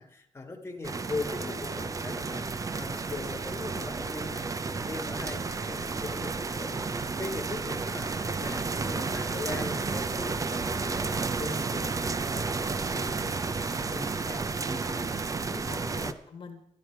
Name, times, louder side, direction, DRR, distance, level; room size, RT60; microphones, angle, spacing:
voice 1, 0.0-6.8 7.2-14.4 15.1-15.2 15.8-16.1, left 3 dB, 20° left, 2 dB, 1.5 m, -40 dB
sound 1, 0.8-16.1, right 4 dB, 25° right, 0.5 m, -32 dB
voice 2, 14.6-16.7, left 4 dB, 40° left, 4 dB, 1.4 m, -45 dB
13.0 x 11.5 x 4.6 m, 0.75 s
wide cardioid pair, 155°, 13 cm